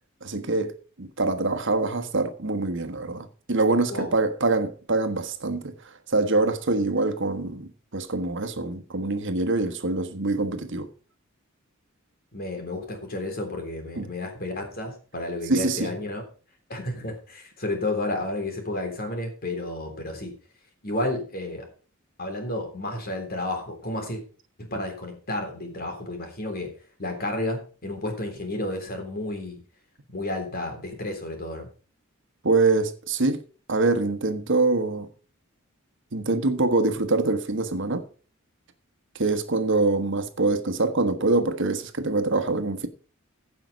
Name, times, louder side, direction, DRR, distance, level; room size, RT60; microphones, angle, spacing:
voice 1, 0.2-5.7 6.1-10.9 14.0-14.1 15.5-15.9 32.4-33.4 33.7-35.1 36.1-38.1 39.1-42.9, right 3 dB, 60° right, 1.3 m, -24 dB
voice 2, 12.3-16.2 16.7-20.3 20.8-21.7 22.2-24.2 24.6-26.7 27.0-29.6 30.1-31.7, left 1 dB, 45° left, 3.6 m, -31 dB
15.5 x 5.8 x 5.2 m
head